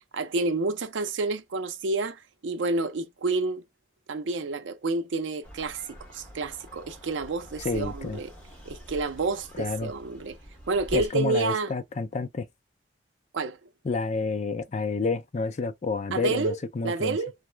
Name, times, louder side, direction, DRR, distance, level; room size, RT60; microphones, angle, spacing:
voice 1, 0.1-3.6 4.1-8.3 8.7-10.4 10.7-11.7 13.3-13.6 16.1-16.6 16.8-17.3, right 3 dB, 90° right, 0.5 m, -29 dB
sound 1, 5.4-11.1, equal, 5° left, 1.3 m, -46 dB
voice 2, 7.6-8.2 9.6-9.9 10.9-12.5 13.8-17.2, left 4 dB, 40° left, 0.4 m, -29 dB
3.0 x 2.1 x 3.2 m
head